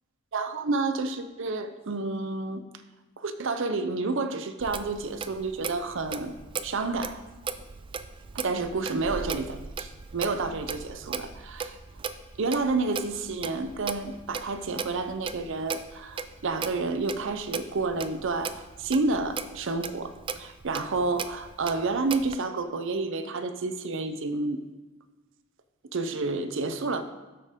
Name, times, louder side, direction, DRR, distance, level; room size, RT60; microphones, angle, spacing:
voice 1, 0.3-2.6 3.2-6.4 6.6-7.2 8.3-11.8 12.4-24.6 25.9-27.0, right 3 dB, 60° right, 10 dB, 0.6 m, -30 dB
Clock, 4.6-22.4, right 5 dB, 25° right, 0.3 m, -38 dB
12.0 x 6.5 x 3.6 m, 1.2 s
head